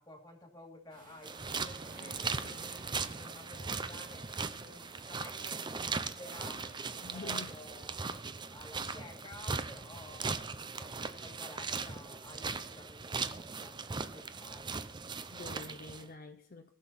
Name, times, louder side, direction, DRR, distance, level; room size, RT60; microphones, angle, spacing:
voice 1, 0.0-4.3 4.6-6.7 7.1-8.0 8.5-10.5 10.8-14.8, left 1 dB, 20° left, 2 dB, 2.4 m, -52 dB
sound 1, 0.9-7.2, right 2 dB, 45° right, 2.1 m, -55 dB
sound 2, 1.2-16.1, right 4 dB, 25° right, 0.6 m, -39 dB
voice 2, 7.0-7.5 15.3-16.7, left 3 dB, 50° left, 5 dB, 0.6 m, -46 dB
19.0 x 6.5 x 4.2 m, 0.67 s
head